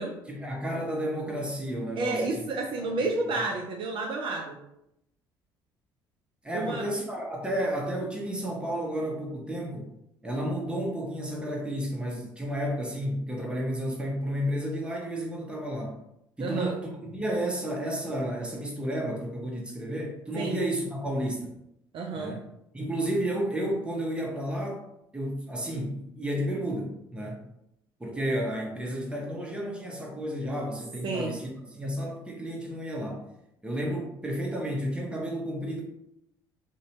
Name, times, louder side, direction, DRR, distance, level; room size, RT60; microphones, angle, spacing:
voice 1, 0.3-2.4 2.8-3.1 6.4-9.9 10.2-15.9 16.4-21.5 22.2-22.4 22.7-24.8 25.1-27.4 28.0-33.2 33.6-35.8, equal, 10° right, -1 dB, 0.7 m, -32 dB
voice 2, 2.0-4.6 6.5-6.9 16.4-16.8 20.4-20.6 21.9-22.4 31.0-31.3, right 3 dB, 45° right, 0 dB, 0.4 m, -30 dB
2.6 x 2.1 x 2.9 m, 0.81 s
figure-of-eight pair, 55°, 12 cm